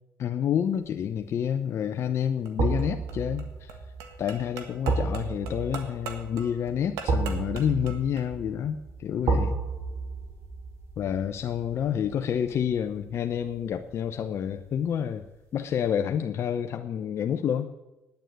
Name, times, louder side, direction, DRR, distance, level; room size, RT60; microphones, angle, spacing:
voice 1, 0.2-3.8 4.2-9.5 11.0-15.3 15.5-17.7, left 8 dB, 60° left, 7 dB, 0.7 m, -29 dB
sound 1, 0.8-1.2 2.6-13.6 13.9-14.0, right 3 dB, 70° right, 2.7 m, -32 dB
sound 2, 2.4-8.3, right 5 dB, 90° right, 1.5 m, -42 dB
9.3 x 8.9 x 9.2 m, 1.0 s
supercardioid pair, 75°, 5 cm